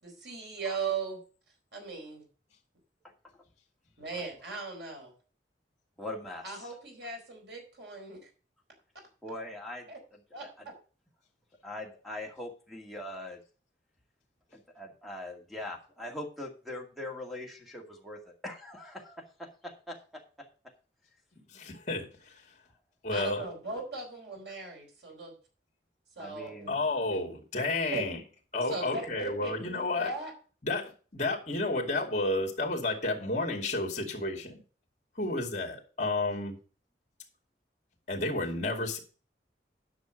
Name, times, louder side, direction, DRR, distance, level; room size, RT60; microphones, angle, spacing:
voice 1, 0.0-1.2 1.7-2.2 4.0-5.1 6.4-8.3 9.9-10.0 10.3-10.7 23.1-25.3 26.2-26.7 27.1-27.2 27.9-28.1 28.7-30.3, right 4 dB, 85° right, 2 dB, 4.4 m, -38 dB
voice 2, 6.0-6.4 9.2-9.9 10.4-10.5 11.6-13.4 14.5-20.5 26.2-26.8, left 1 dB, ahead, 1 dB, 2.1 m, -42 dB
voice 3, 21.5-22.5 23.0-23.5 26.7-28.2 28.5-30.1 30.6-34.6 35.2-36.6 38.1-39.0, left 2 dB, 45° left, 1 dB, 2.4 m, -31 dB
10.5 x 6.2 x 6.4 m, 0.38 s
head